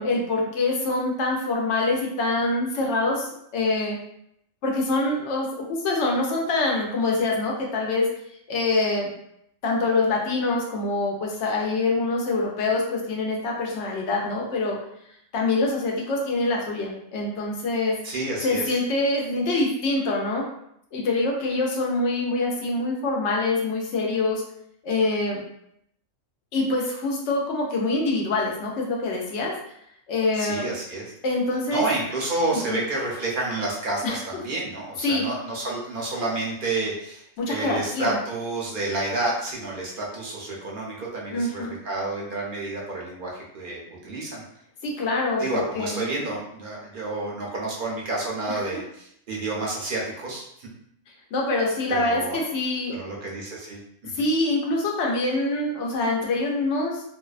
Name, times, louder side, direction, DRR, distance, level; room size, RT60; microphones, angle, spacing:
voice 1, 0.0-3.3 3.5-4.0 4.6-8.1 8.5-9.1 9.6-14.8 15.3-18.0 18.4-20.4 20.9-24.4 24.8-25.4 26.5-29.5 30.1-30.7 31.2-31.9 32.5-32.8 34.0-34.2 35.0-35.2 37.4-38.2 41.3-41.7 44.8-46.1 48.5-48.6 51.3-53.0 54.1-57.0, left 2 dB, 65° left, -1 dB, 0.8 m, -25 dB
voice 2, 18.0-18.7 30.3-31.0 31.7-44.4 45.4-50.7 51.9-52.4 52.9-54.2, right 2 dB, 50° right, -3 dB, 0.7 m, -30 dB
2.6 x 2.1 x 2.3 m, 0.74 s
omnidirectional pair, 1.4 m